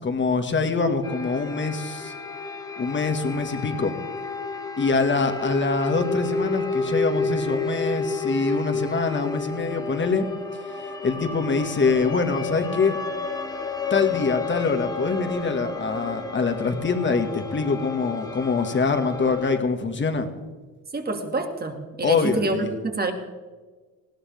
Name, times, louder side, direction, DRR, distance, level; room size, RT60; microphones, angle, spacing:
voice 1, 0.0-2.1 2.8-3.9 4.8-10.3 11.0-13.0 13.9-20.3 22.0-22.7, left 4 dB, 30° left, 6 dB, 2.0 m, -24 dB
sound 1, 1.0-19.6, left 3 dB, 10° left, 1.4 m, -31 dB
voice 2, 20.9-23.1, right 3 dB, 25° right, 4 dB, 2.4 m, -27 dB
19.5 x 17.0 x 3.6 m, 1.4 s
cardioid pair, 105°, 39 cm